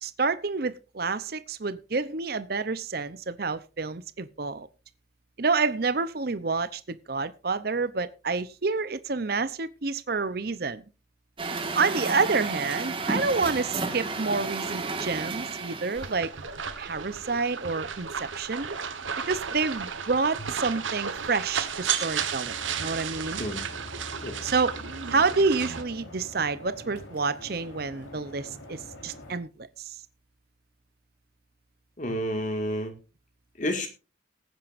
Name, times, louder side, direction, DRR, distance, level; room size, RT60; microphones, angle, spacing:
voice 1, 0.0-4.7 5.4-10.8 11.5-16.3 16.8-18.7 19.3-23.4 24.4-24.7 25.1-29.9, right 4 dB, 50° right, 0.7 m, -28 dB
Truck, 11.4-16.2, right 3 dB, 25° right, 1.7 m, -32 dB
sound 1, 16.0-25.8, right 7 dB, 85° right, 1.3 m, -33 dB
sound 2, 22.4-29.4, left 1 dB, 85° left, 3.9 m, -44 dB
voice 2, 32.0-32.9 33.6-33.9, equal, 40° left, 2.0 m, -30 dB
19.5 x 9.2 x 2.6 m
head